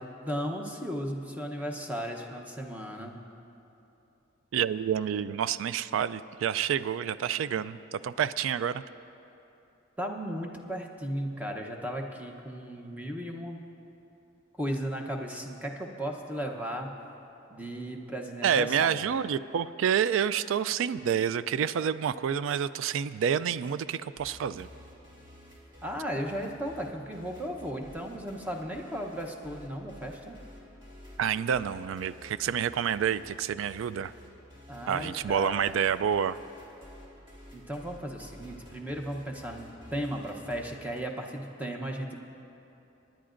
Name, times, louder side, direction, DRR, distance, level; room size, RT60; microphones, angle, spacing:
voice 1, 0.0-3.2 10.0-13.6 14.6-17.0 17.5-19.0 25.8-30.4 34.7-35.8 37.5-42.1, equal, 10° right, 1 dB, 0.8 m, -35 dB
voice 2, 4.5-8.8 18.4-24.7 31.2-34.1 34.9-36.4, right 8 dB, 80° right, 16 dB, 0.3 m, -28 dB
sound 1, 24.2-41.0, left 1 dB, 25° right, 2.3 m, -51 dB
25.0 x 10.5 x 2.5 m, 2.9 s
head